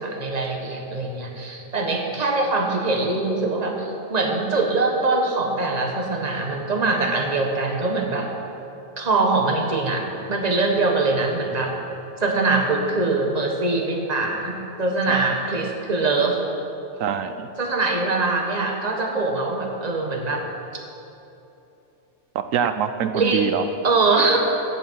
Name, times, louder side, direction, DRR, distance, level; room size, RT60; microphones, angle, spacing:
voice 1, 0.0-8.3 9.0-11.7 12.2-16.4 17.6-20.4 23.1-23.5 23.8-24.4, right 3 dB, 30° right, 1 dB, 1.3 m, -23 dB
voice 2, 17.0-17.5 22.3-23.6, right 8 dB, 90° right, 9 dB, 1.0 m, -24 dB
15.5 x 8.3 x 4.7 m, 2.9 s
omnidirectional pair, 1.3 m